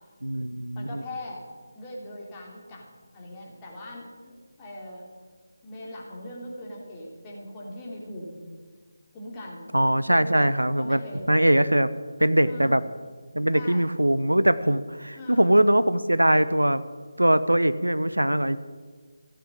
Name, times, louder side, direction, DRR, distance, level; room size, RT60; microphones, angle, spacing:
voice 1, 0.2-1.0 9.7-11.0 11.3-11.9 12.2-12.8 13.3-16.8 17.2-18.6, right 1 dB, 85° right, 14 dB, 0.7 m, -21 dB
voice 2, 0.7-1.5 1.7-2.9 3.1-5.1 5.6-8.4 9.1-9.7 10.0-10.5 10.7-11.4 12.4-12.8 13.5-13.9 15.1-15.5, left 1 dB, 15° left, -4 dB, 3.1 m, -40 dB
15.5 x 8.4 x 8.9 m, 1.5 s
figure-of-eight pair, 155°, 0 cm